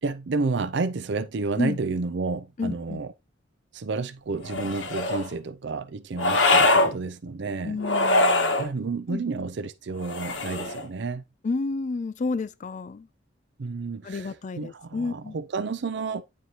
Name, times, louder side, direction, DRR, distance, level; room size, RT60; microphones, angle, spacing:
voice 1, 0.0-3.1 3.7-7.8 8.6-11.2 13.6-16.2, right 4 dB, 65° right, 0.5 m, -30 dB
voice 2, 2.6-3.0 7.6-8.6 9.1-9.2 11.4-13.1 14.0-15.4, left 3 dB, 40° left, 0.4 m, -30 dB
sound 1, 4.4-5.3 6.2-6.9 7.8-8.7 10.0-10.9, left 2 dB, 75° left, 1.5 m, -22 dB
9.4 x 4.5 x 2.9 m
head